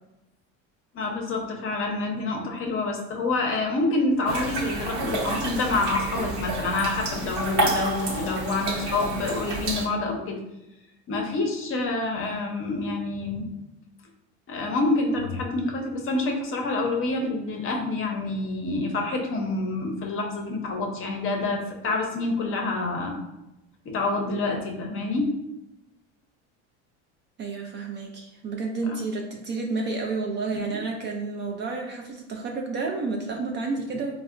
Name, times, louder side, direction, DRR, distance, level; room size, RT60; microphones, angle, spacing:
voice 1, 0.9-10.4 11.1-13.5 14.5-23.2 23.8-25.3 30.5-30.6, left 2 dB, 35° left, 1 dB, 0.6 m, -27 dB
sound 1, 4.3-9.9, right 1 dB, 50° right, 0.9 m, -29 dB
voice 2, 27.4-34.2, right 3 dB, 30° right, 1 dB, 0.4 m, -30 dB
4.1 x 2.1 x 2.4 m, 0.93 s
supercardioid pair, 95°, 36 cm